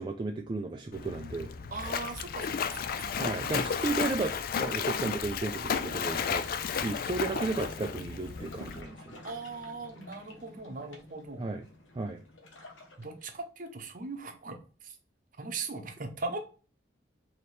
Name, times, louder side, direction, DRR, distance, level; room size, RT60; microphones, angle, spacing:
voice 1, 0.0-1.5 3.2-9.2 11.4-11.6 11.9-12.2, right 3 dB, 25° right, 2 dB, 0.3 m, -34 dB
Splash splatter, 0.9-8.8, left 6 dB, 50° left, 0.3 m, -33 dB
voice 2, 1.7-3.5 7.3-7.4 9.2-11.5 13.0-14.9 15.4-16.4, right 3 dB, 45° right, 5 dB, 0.7 m, -39 dB
sound 1, 6.0-13.4, left 2 dB, 90° left, 1.0 m, -51 dB
4.2 x 2.9 x 3.1 m, 0.37 s
head